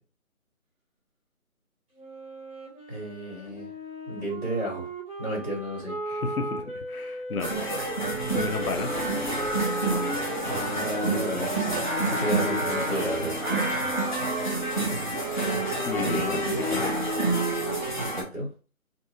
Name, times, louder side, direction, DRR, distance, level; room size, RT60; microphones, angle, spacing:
Wind instrument woodwind instrument, 1.9-7.9 8.5-14.4, right 1 dB, 25° right, 1.2 m, -38 dB
voice 1, 2.9-3.7 4.1-4.9 5.2-6.0 10.4-13.4 16.0-16.6 18.1-18.5, right 1 dB, 5° left, -9 dB, 1.4 m, -32 dB
voice 2, 6.1-7.5 8.3-8.9 15.9-16.9, left 4 dB, 85° left, 6 dB, 0.7 m, -32 dB
sound 1, 7.4-18.2, right 2 dB, 35° left, 0.7 m, -28 dB
Singing, 11.8-17.1, equal, 40° right, 0.7 m, -35 dB
2.7 x 2.6 x 2.5 m, 0.36 s
figure-of-eight pair, 170°, 42 cm